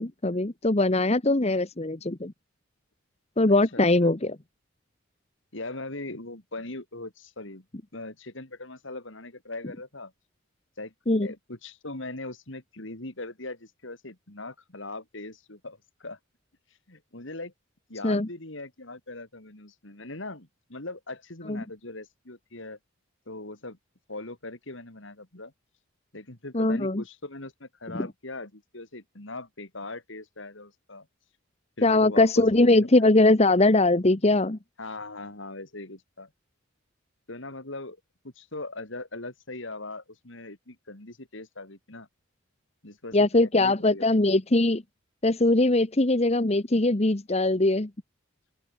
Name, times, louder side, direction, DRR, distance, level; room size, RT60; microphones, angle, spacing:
voice 1, 0.0-2.3 3.4-4.4 11.1-11.3 18.0-18.3 21.5-21.6 26.5-27.0 27.9-28.1 31.8-34.6 43.1-44.8 45.2-47.9, left 2 dB, 30° left, 1.1 m, -21 dB
voice 2, 3.7-4.1 5.5-7.6 7.9-10.1 10.8-10.9 11.2-16.2 16.9-17.5 17.9-22.8 23.3-23.8 24.1-25.5 26.1-31.1 31.8-33.1 34.8-36.3 37.3-38.0 38.2-42.1 42.8-44.1, left 2 dB, 60° left, 2.9 m, -40 dB
open air
head